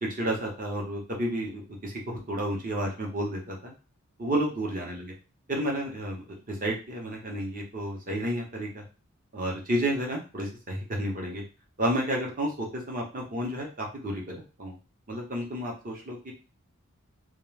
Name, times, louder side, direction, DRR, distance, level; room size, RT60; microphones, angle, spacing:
voice 1, 0.0-3.7 4.2-5.1 5.5-8.8 9.3-11.4 11.8-14.7 15.1-16.3, right 1 dB, 40° right, 0 dB, 0.7 m, -31 dB
2.3 x 2.1 x 3.2 m, 0.33 s
head